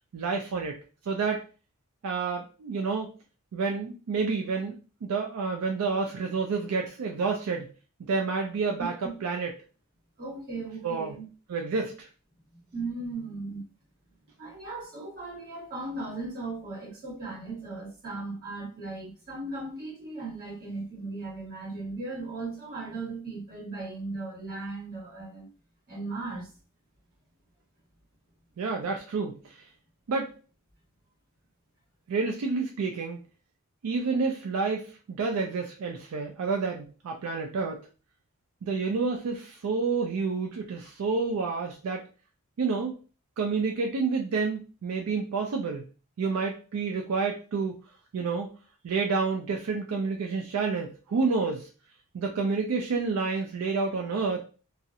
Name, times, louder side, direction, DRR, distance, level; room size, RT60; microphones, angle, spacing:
voice 1, 0.1-0.8 1.1-1.4 2.0-3.1 3.5-7.7 8.0-8.9 9.2-9.5 10.8-11.1 11.5-12.1 28.6-29.7 30.1-30.3 32.1-33.2 33.8-37.9 38.6-42.0 42.6-43.0 43.4-45.9 46.2-47.8 48.1-48.5 48.8-51.7 52.1-54.4, right 4 dB, 85° right, 0.4 m, -29 dB
voice 2, 8.8-9.1 10.2-11.2 12.7-13.6 14.4-25.5 25.9-26.5, right 3 dB, 45° right, 1.2 m, -37 dB
2.4 x 2.0 x 2.7 m
head